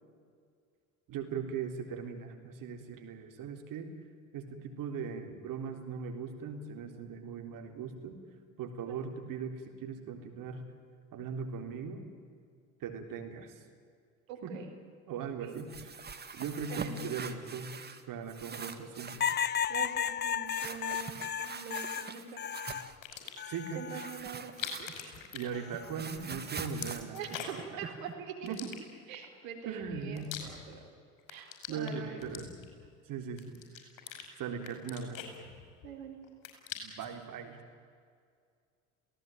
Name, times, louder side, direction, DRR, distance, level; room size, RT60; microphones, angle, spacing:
voice 1, 1.1-3.9 4.3-8.2 8.6-10.6 11.1-12.0 12.8-13.5 14.4-14.5 15.1-17.8 18.1-19.2 23.4-24.1 25.3-27.4 27.7-27.8 28.4-28.7 29.7-30.3 31.7-32.5 33.1-33.9 34.4-35.3 36.8-37.6, right 6 dB, 50° right, 4 dB, 3.8 m, -39 dB
voice 2, 14.3-14.7 15.2-15.5 16.7-17.2 18.5-19.1 19.7-22.4 22.6-22.8 23.7-24.5 24.8-24.9 27.1-28.5 29.1-30.8 31.3-32.2 35.8-36.2, right 7 dB, 75° right, 3 dB, 4.2 m, -44 dB
sound 1, 15.5-18.0 18.3-19.5 20.5-23.0 23.9-25.2 25.5-28.1, right 5 dB, 25° right, 2.1 m, -43 dB
sound 2, 19.2-22.9 23.4-24.2 25.5-26.0, left 8 dB, 25° left, 0.7 m, -34 dB
sound 3, 22.9-23.6 24.4-26.1 26.3-27.7 28.5-29.3 29.8-30.9 31.2-32.9 33.4-34.3 34.6-35.9 36.2-37.1, left 9 dB, 55° left, 5.8 m, -43 dB
27.5 x 17.5 x 9.2 m, 2.2 s
hypercardioid pair, 65°, 40 cm